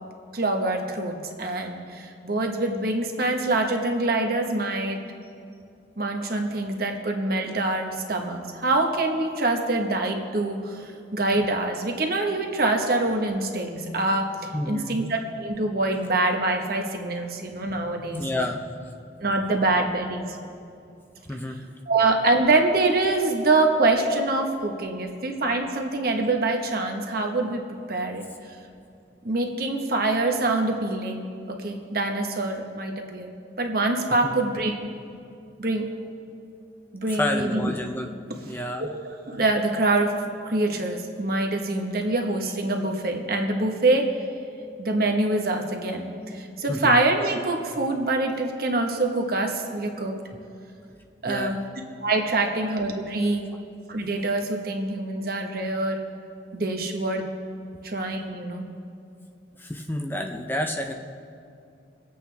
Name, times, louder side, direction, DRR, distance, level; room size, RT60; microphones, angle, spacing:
voice 1, 0.3-5.0 6.0-18.2 19.2-20.4 21.9-28.3 29.2-34.9 35.6-35.9 36.9-37.6 38.9-39.0 39.3-44.2 44.8-50.2 51.2-51.6 52.0-53.5 53.9-56.0 56.5-57.3 57.8-58.6, right 2 dB, 55° right, 3 dB, 1.3 m, -25 dB
voice 2, 14.5-14.9 17.7-17.8 18.1-18.9 21.3-21.7 34.2-34.3 37.1-38.1 38.4-38.9 46.7-47.0 51.3-51.6 59.6-60.9, left 1 dB, 10° left, 3 dB, 0.5 m, -30 dB
25.0 x 8.4 x 3.4 m, 2.4 s
head